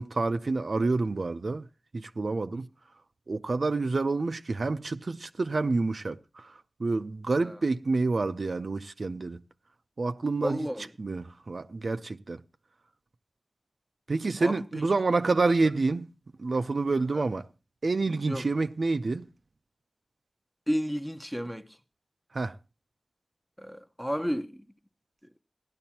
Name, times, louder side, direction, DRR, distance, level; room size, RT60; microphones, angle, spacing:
voice 1, 0.0-1.6 1.9-2.7 3.3-6.5 6.8-9.4 10.0-10.7 11.0-12.4 14.1-16.1 16.4-17.5 17.8-19.3 22.3-22.5, right 3 dB, 70° right, 0.6 m, -28 dB
voice 2, 10.4-10.9 14.4-14.5 17.1-17.2 18.3-18.4 20.7-21.7 23.6-24.6, equal, ahead, 0.7 m, -31 dB
16.0 x 11.5 x 2.8 m
wide cardioid pair, 75°, 0 cm